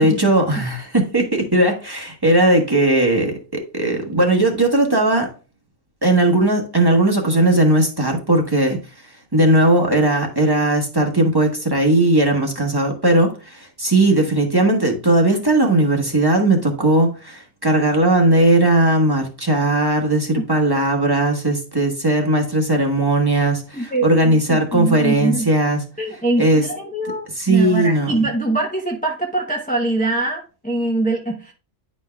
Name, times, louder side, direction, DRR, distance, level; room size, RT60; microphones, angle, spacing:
voice 1, 0.0-5.3 6.0-8.8 9.3-25.8 26.4-26.6 27.4-28.1, right 1 dB, 20° right, 1.3 m, -17 dB
voice 2, 23.7-25.5 26.0-31.5, right 2 dB, 10° left, 0.8 m, -23 dB
10.0 x 5.3 x 2.3 m
omnidirectional pair, 1.2 m